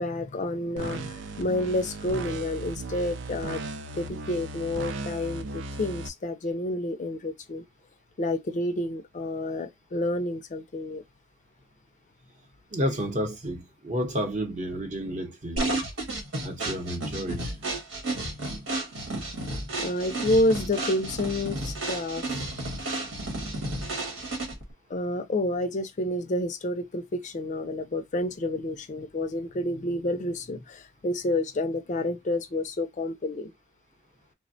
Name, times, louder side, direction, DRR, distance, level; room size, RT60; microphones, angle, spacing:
voice 1, 0.0-3.6 3.9-7.7 8.2-11.0 19.8-22.2 24.9-33.5, left 1 dB, 40° left, 0.4 m, -29 dB
sound 1, 0.8-6.1, right 3 dB, 65° right, 0.4 m, -36 dB
voice 2, 12.7-15.7 16.4-17.6, equal, 40° right, 0.8 m, -31 dB
sound 2, 15.6-24.7, right 2 dB, 80° right, 1.3 m, -32 dB
3.3 x 2.1 x 2.6 m
head